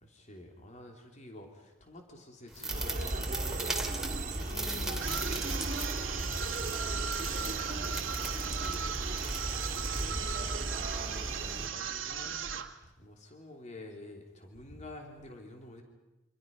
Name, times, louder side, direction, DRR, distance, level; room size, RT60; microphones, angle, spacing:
voice 1, 0.0-4.0 6.8-7.6 9.3-10.6 11.2-12.5 12.8-15.8, left 1 dB, 40° left, 2 dB, 3.2 m, -50 dB
sound 1, 2.5-10.5, right 2 dB, ahead, 2.5 m, -41 dB
sound 2, 2.7-11.7, right 2 dB, 40° right, 2.6 m, -36 dB
voice 2, 4.5-5.4 7.3-9.0 11.4-11.6, left 1 dB, 90° left, 4 dB, 4.6 m, -49 dB
sound 3, 5.0-12.8, right 8 dB, 85° right, 1.6 m, -37 dB
28.0 x 26.0 x 5.4 m, 0.99 s
head